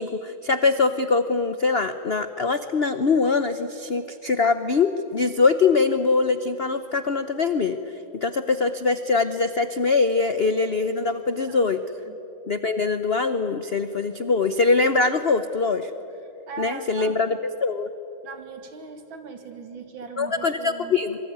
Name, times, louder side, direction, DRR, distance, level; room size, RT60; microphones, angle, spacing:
voice 1, 0.0-7.8 8.1-11.8 12.5-15.9 16.6-17.9 20.2-21.2, left 4 dB, 65° left, 10 dB, 0.6 m, -23 dB
voice 2, 16.5-17.3 18.2-20.9, right 5 dB, 65° right, 7 dB, 2.9 m, -39 dB
26.5 x 23.5 x 9.5 m, 2.9 s
omnidirectional pair, 2.3 m